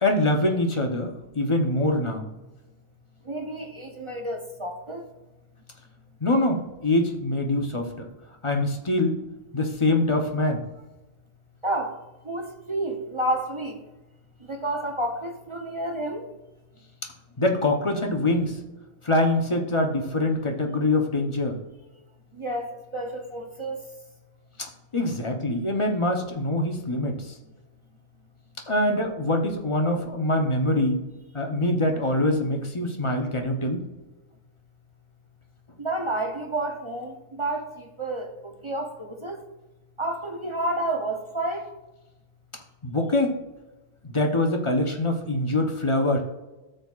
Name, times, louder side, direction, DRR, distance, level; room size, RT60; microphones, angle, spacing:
voice 1, 0.0-2.3 6.2-8.0 8.4-9.2 9.5-10.6 17.4-18.6 19.0-21.6 24.6-27.3 28.7-31.0 31.3-33.9 42.8-43.3 44.0-46.2, left 1 dB, 30° left, 3 dB, 0.6 m, -24 dB
voice 2, 3.3-5.0 11.6-11.9 12.3-13.8 14.5-16.3 22.4-23.8 35.8-39.4 40.0-41.7, right 1 dB, 45° right, 2 dB, 0.4 m, -30 dB
13.5 x 6.6 x 2.4 m, 1.1 s
omnidirectional pair, 1.6 m